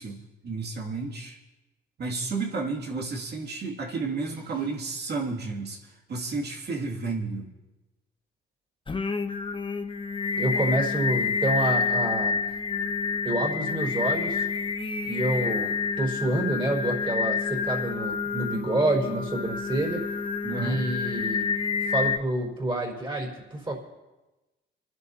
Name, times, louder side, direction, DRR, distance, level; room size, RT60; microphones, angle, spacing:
voice 1, 0.0-1.4 2.0-7.5 20.4-20.8, right 4 dB, 55° right, -2 dB, 2.6 m, -32 dB
Singing, 8.9-22.2, left 5 dB, 25° left, 0.9 m, -28 dB
voice 2, 10.4-12.4 13.2-14.5 15.0-20.0 20.6-21.5 21.9-23.7, right 1 dB, 25° right, -2 dB, 4.8 m, -28 dB
28.5 x 11.0 x 2.9 m, 1.1 s
cardioid pair, 90°, 20 cm